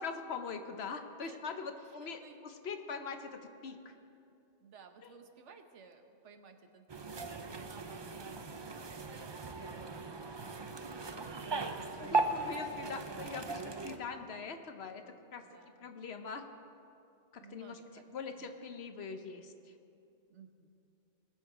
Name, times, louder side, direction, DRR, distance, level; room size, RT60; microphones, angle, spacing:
voice 1, 0.0-3.9 5.0-5.2 12.0-15.0 15.3-15.4 15.8-16.4 17.3-17.8 18.1-19.7, left 5 dB, 65° left, 7 dB, 1.1 m, -42 dB
voice 2, 1.2-2.4 4.6-11.8 12.1-12.2 15.4-15.9 17.4-18.0 18.3-18.6 20.3-20.7, right 5 dB, 85° right, 6 dB, 1.2 m, -59 dB
sound 1, 6.9-14.0, right 3 dB, 35° right, 0.5 m, -38 dB
20.0 x 7.3 x 4.9 m, 2.6 s
omnidirectional pair, 1.2 m